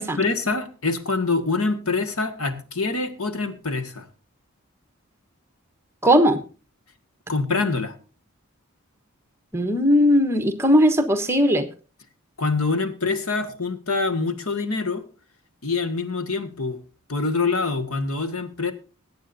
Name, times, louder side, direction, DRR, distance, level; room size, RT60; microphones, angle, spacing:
voice 1, 0.0-4.1 7.3-7.9 12.4-15.0 15.6-16.8 17.1-18.7, left 3 dB, 90° left, 9 dB, 1.6 m, -25 dB
voice 2, 6.0-6.4 9.5-11.7, equal, 10° right, 8 dB, 1.1 m, -18 dB
21.5 x 9.0 x 2.6 m, 0.37 s
head